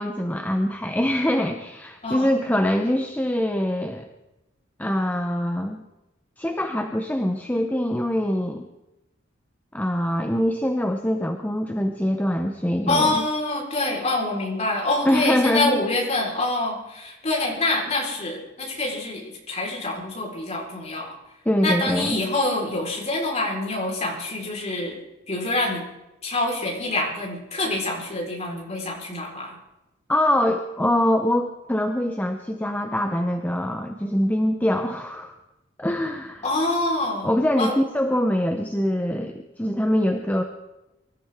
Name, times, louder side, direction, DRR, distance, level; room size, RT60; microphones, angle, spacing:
voice 1, 0.0-4.1 4.8-5.8 6.4-8.7 9.7-13.2 15.0-15.8 21.5-22.2 30.1-35.3 35.8-36.4 37.2-40.4, left 1 dB, 10° left, 4 dB, 0.8 m, -24 dB
voice 2, 12.9-19.2 19.5-21.1 21.6-24.9 25.3-25.8 26.2-29.6 36.4-37.3 37.6-37.8, left 2 dB, 35° left, -2 dB, 4.4 m, -26 dB
24.0 x 13.5 x 3.7 m, 0.95 s
head